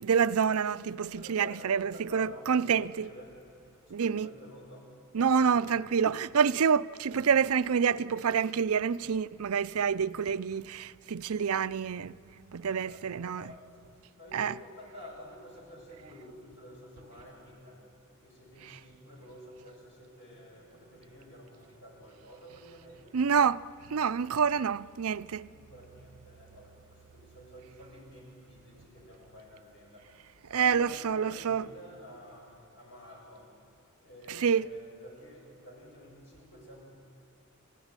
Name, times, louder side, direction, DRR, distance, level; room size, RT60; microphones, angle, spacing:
voice 1, 0.0-3.1 3.9-4.3 5.1-12.2 12.5-13.5 14.3-14.5 23.1-23.6 23.9-25.5 30.5-31.7 34.4-34.7, right 6 dB, 85° right, 0.5 m, -27 dB
voice 2, 1.0-3.4 3.8-5.6 12.6-23.2 25.5-33.6 34.0-36.9, left 1 dB, 60° left, 7.7 m, -50 dB
28.0 x 15.5 x 9.6 m
head